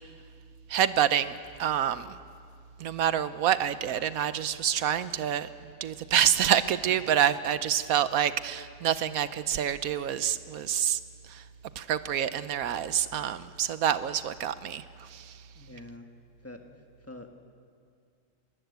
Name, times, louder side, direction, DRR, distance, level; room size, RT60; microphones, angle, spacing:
voice 1, 0.7-2.2 2.8-5.5 5.8-11.0 11.3-11.4 11.8-15.3, right 10 dB, 85° right, 14 dB, 1.2 m, -27 dB
voice 2, 15.5-16.1 16.4-16.8 17.1-17.3, left 2 dB, 10° left, 3 dB, 1.6 m, -45 dB
22.5 x 20.0 x 8.1 m, 2.3 s
omnidirectional pair, 1.5 m